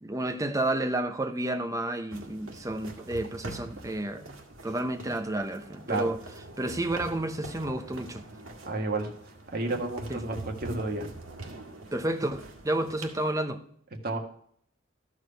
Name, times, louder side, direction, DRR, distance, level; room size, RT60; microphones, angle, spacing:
voice 1, 0.0-4.3 4.6-6.2 6.6-8.2 10.1-10.2 11.9-13.6, right 1 dB, 15° right, 0.8 m, -31 dB
sound 1, 2.1-13.3, right 2 dB, 85° right, 1.7 m, -44 dB
voice 2, 8.7-9.1 9.5-11.1 14.0-14.2, right 2 dB, 50° right, 1.7 m, -31 dB
13.5 x 4.8 x 5.7 m
head